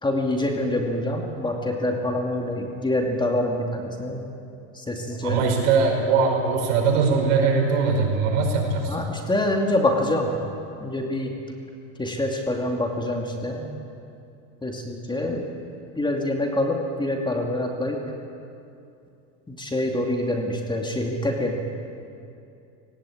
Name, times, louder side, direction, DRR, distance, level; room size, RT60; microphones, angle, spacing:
voice 1, 0.0-4.2 4.7-5.4 8.9-10.3 10.8-11.3 12.0-13.7 14.6-15.5 16.0-18.0 19.5-21.6, left 1 dB, 10° left, 2 dB, 2.5 m, -26 dB
voice 2, 5.2-9.0, right 4 dB, 75° right, 1 dB, 5.3 m, -21 dB
18.5 x 17.5 x 8.7 m, 2.6 s
supercardioid pair, 120°, 38 cm